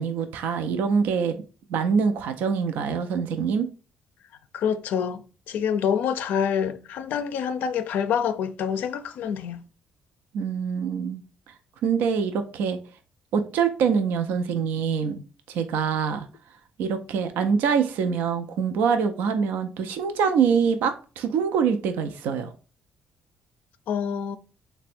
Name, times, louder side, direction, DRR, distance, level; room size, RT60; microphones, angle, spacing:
voice 1, 0.0-1.4 1.7-3.7 10.3-11.2 11.8-12.8 13.3-15.2 15.5-16.3 16.8-22.5, right 6 dB, 90° right, 0.4 m, -24 dB
voice 2, 4.5-9.6 23.9-24.4, left 7 dB, 75° left, 0.4 m, -27 dB
3.3 x 2.1 x 4.2 m
cardioid pair, 110°, 3 cm